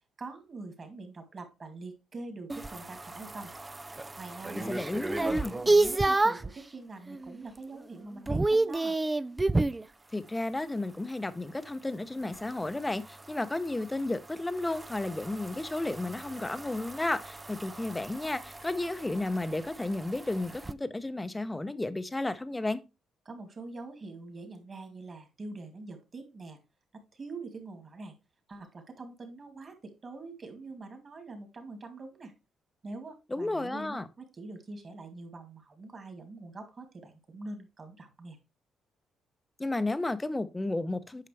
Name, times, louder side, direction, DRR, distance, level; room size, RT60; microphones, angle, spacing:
voice 1, 0.2-3.5 4.2-4.7 5.1-9.0 23.3-26.6 26.9-28.1 28.5-32.3 32.8-38.4, right 3 dB, 40° right, 2.3 m, -44 dB
sound 1, 2.5-6.6 7.1-7.5 7.8-9.9 12.3-20.7, right 2 dB, 20° right, 0.4 m, -31 dB
voice 2, 4.6-5.5 10.1-22.8 33.3-34.1 39.6-41.3, left 2 dB, 15° left, 0.7 m, -33 dB
8.6 x 5.7 x 3.3 m
cardioid pair, 90°, 0 cm